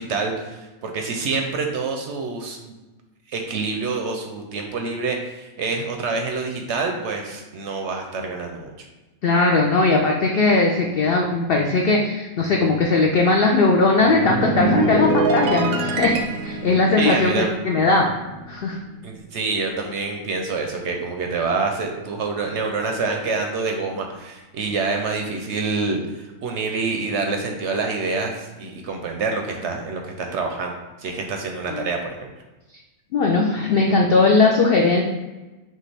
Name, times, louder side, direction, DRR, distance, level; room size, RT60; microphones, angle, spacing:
voice 1, 0.0-2.6 3.3-8.9 17.0-17.5 19.0-32.3, right 4 dB, 65° right, 3 dB, 0.7 m, -27 dB
voice 2, 9.2-16.2 16.4-18.1 18.5-18.8 31.7-31.8 33.1-35.0, left 3 dB, 80° left, 1 dB, 0.5 m, -19 dB
sound 1, 14.0-18.6 18.9-19.2, right 2 dB, 85° right, 1.0 m, -25 dB
6.4 x 2.4 x 3.3 m, 1.1 s
omnidirectional pair, 1.5 m